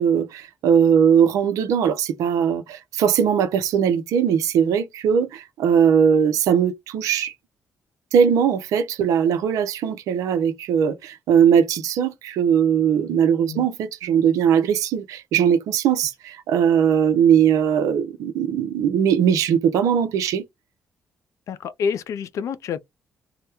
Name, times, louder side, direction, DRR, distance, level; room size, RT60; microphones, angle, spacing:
voice 1, 0.0-7.3 8.1-20.4, right 8 dB, 75° right, 0.5 m, -20 dB
voice 2, 21.5-22.8, left 6 dB, 65° left, 0.3 m, -28 dB
2.2 x 2.0 x 2.9 m
hypercardioid pair, 50°, 6 cm